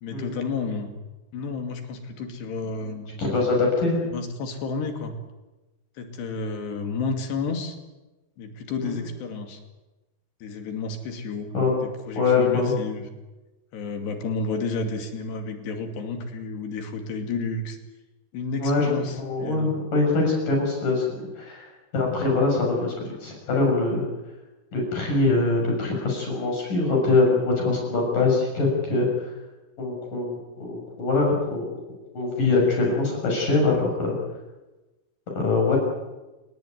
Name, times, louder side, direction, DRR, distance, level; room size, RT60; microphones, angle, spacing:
voice 1, 0.0-1.0 1.3-3.1 4.1-5.2 6.0-7.8 8.4-9.6 10.4-11.5 11.8-13.1 13.7-17.8 18.3-19.7, left 4 dB, 80° left, 5 dB, 4.7 m, -31 dB
voice 2, 3.2-4.0 8.8-9.0 11.5-11.8 12.1-12.7 18.6-18.9 19.2-21.1 21.4-24.0 24.7-29.3 29.8-31.7 32.1-34.1 35.3-35.8, left 3 dB, 50° left, 0 dB, 8.2 m, -23 dB
28.5 x 18.5 x 9.5 m, 1.1 s
omnidirectional pair, 4.8 m